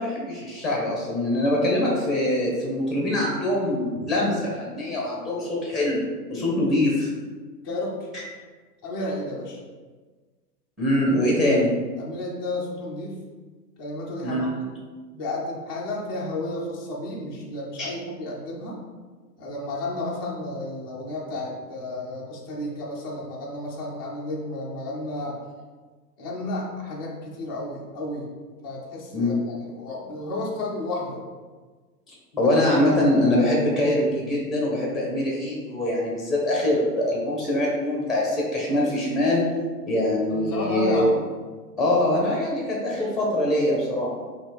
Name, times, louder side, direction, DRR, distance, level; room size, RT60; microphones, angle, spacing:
voice 1, 0.0-7.1 10.8-11.7 14.2-14.5 17.8-17.9 29.1-29.3 32.4-39.5 39.9-41.1 41.8-44.2, left 1 dB, ahead, -2 dB, 0.9 m, -23 dB
voice 2, 7.6-8.1 8.8-9.6 11.4-11.6 12.0-13.2 13.8-14.5 15.1-18.8 19.4-25.4 26.2-28.3 28.6-31.2 32.4-32.5 40.3-41.2, left 1 dB, 15° left, -5 dB, 0.3 m, -32 dB
5.2 x 2.4 x 3.4 m, 1.4 s
hypercardioid pair, 115°, 49 cm